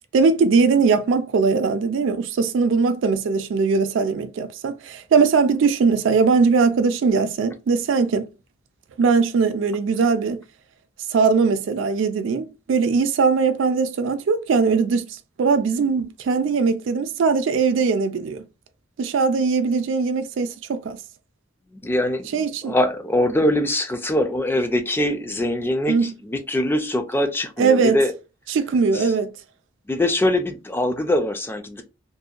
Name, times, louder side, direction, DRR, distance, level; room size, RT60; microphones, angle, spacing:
voice 1, 0.1-8.3 9.0-10.4 11.1-18.4 19.0-21.0 22.3-22.7 25.9-26.1 27.6-28.0 28.5-29.3, right 5 dB, 70° right, 0.3 m, -20 dB
voice 2, 21.8-28.1 28.9-29.1 29.9-31.8, left 1 dB, 10° left, 0.3 m, -23 dB
2.6 x 2.2 x 2.4 m
head